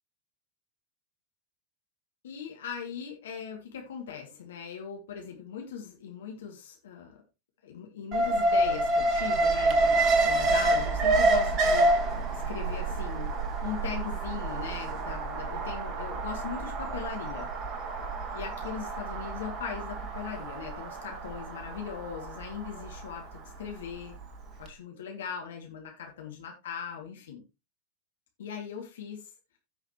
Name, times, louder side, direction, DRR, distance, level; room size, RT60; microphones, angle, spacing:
voice 1, 2.2-7.1 7.6-13.3 13.6-17.5 18.3-24.2 24.6-27.4 28.4-29.2, left 7 dB, 60° left, 1 dB, 2.3 m, -39 dB
Alarm, 8.1-24.2 24.5-24.6, right 2 dB, 30° right, 1.5 m, -28 dB
16.5 x 5.7 x 3.0 m, 0.25 s
figure-of-eight pair, 90°, 0 cm